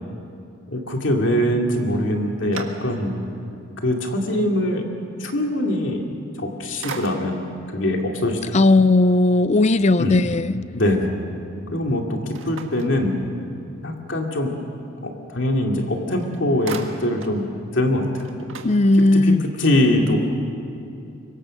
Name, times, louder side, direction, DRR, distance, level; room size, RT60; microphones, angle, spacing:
voice 1, 0.7-3.1 3.8-4.9 5.2-6.0 6.4-7.4 7.7-8.4 10.0-10.2 10.7-11.1 11.7-12.2 12.4-13.1 13.8-14.5 15.0-17.4 17.7-18.4 19.1-20.2, left 1 dB, 60° left, 2 dB, 2.6 m, -22 dB
sound 1, 1.9-3.3 3.8-3.9 6.2-6.5 6.8-7.6 12.3-13.6 15.7-15.8 16.1-17.4 17.8-17.9 18.1-19.4, right 4 dB, 65° right, 1.8 m, -38 dB
voice 2, 8.5-10.6 18.6-19.4, left 2 dB, 35° left, 15 dB, 0.5 m, -16 dB
25.5 x 23.0 x 6.6 m, 2.6 s
head